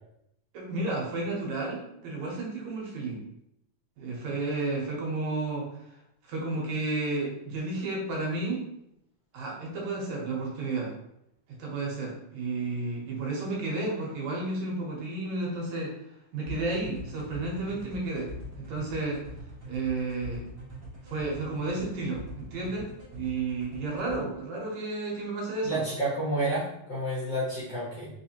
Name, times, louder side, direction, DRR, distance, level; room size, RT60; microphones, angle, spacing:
voice 1, 0.5-3.2 4.0-6.0 6.3-8.6 9.3-10.9 11.6-15.9 16.3-19.2 19.7-20.5 21.0-25.8, right 2 dB, 65° right, -2 dB, 2.1 m, -32 dB
sound 1, 16.5-24.2, equal, 35° right, 1.4 m, -43 dB
voice 2, 25.6-28.1, right 1 dB, 85° left, -8 dB, 0.9 m, -30 dB
5.0 x 3.3 x 2.8 m, 0.78 s
omnidirectional pair, 3.9 m